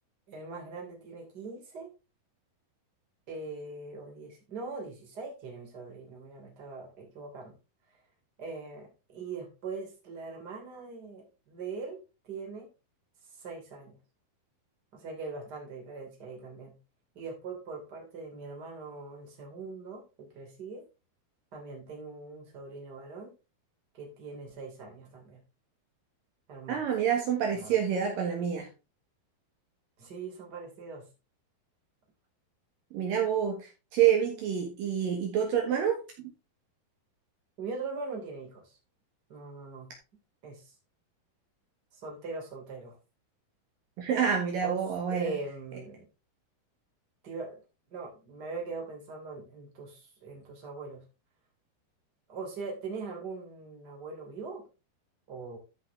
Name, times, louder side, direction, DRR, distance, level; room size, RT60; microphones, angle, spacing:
voice 1, 0.3-1.9 3.3-7.5 8.4-12.0 12.2-12.7 13.4-14.0 14.9-16.7 17.1-20.8 21.5-23.3 23.9-25.4 26.5-26.8 27.6-27.8 30.0-31.0 37.6-38.8 39.3-39.9 40.4-40.7 41.9-43.0 44.6-44.8 45.1-46.0 47.2-47.6 47.9-51.0 52.3-54.6 55.3-55.6, right 4 dB, 25° right, 0 dB, 3.3 m, -41 dB
voice 2, 26.7-28.7 32.9-36.0 44.0-45.4, right 8 dB, 65° right, 1 dB, 3.0 m, -27 dB
13.5 x 5.5 x 3.5 m, 0.29 s
omnidirectional pair, 4.5 m